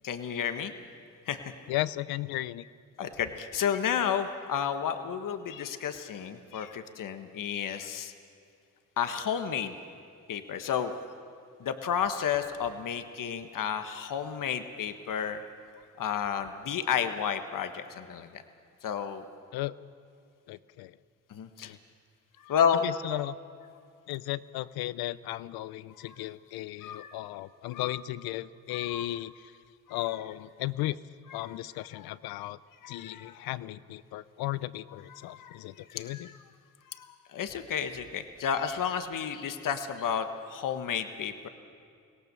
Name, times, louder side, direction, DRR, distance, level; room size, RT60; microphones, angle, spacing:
voice 1, 0.0-0.7 1.3-1.5 3.0-8.1 9.0-9.7 10.3-10.9 11.6-15.4 16.0-18.4 18.8-19.2 21.3-21.7 22.4-22.8 26.0-26.2 26.8-27.1 27.7-28.0 28.7-29.1 29.9-30.2 31.4-31.6 31.9-32.1 32.8-33.5 35.1-35.6 35.9-36.3 36.9-41.5, left 8 dB, 60° left, 8 dB, 1.3 m, -32 dB
voice 2, 1.7-2.6 19.5-19.7 20.5-20.9 21.6-21.8 22.8-23.4 24.1-29.3 29.9-31.0 31.3-32.6 32.9-36.3, left 16 dB, 85° left, 17 dB, 0.6 m, -35 dB
23.5 x 17.5 x 6.8 m, 2.3 s
supercardioid pair, 70°, 36 cm